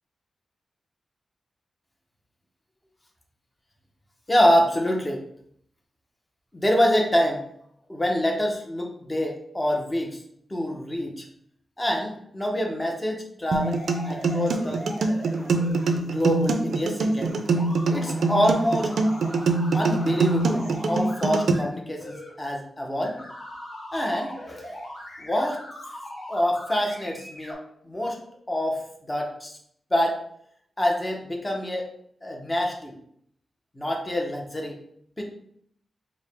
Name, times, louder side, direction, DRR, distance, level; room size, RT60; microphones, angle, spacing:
voice 1, 4.3-5.2 6.5-7.4 7.9-10.2 10.5-11.2 11.8-13.8 14.0-14.8 16.0-17.3 17.9-18.9 19.7-23.2 23.9-24.6 25.2-25.6 26.3-27.6 27.9-28.2 28.5-28.8 29.1-29.6 29.9-30.2 30.8-31.8 32.2-32.9 33.8-34.8 35.2-35.3, equal, 15° left, 1 dB, 0.6 m, -25 dB
sound 1, 13.5-15.9 17.2-21.6 22.0-22.3 23.0-27.5, left 1 dB, 50° left, 1.4 m, -40 dB
sound 2, 13.5-21.5, right 3 dB, 75° right, 0.4 m, -24 dB
4.6 x 2.0 x 3.3 m, 0.69 s
wide cardioid pair, 165°, 0 cm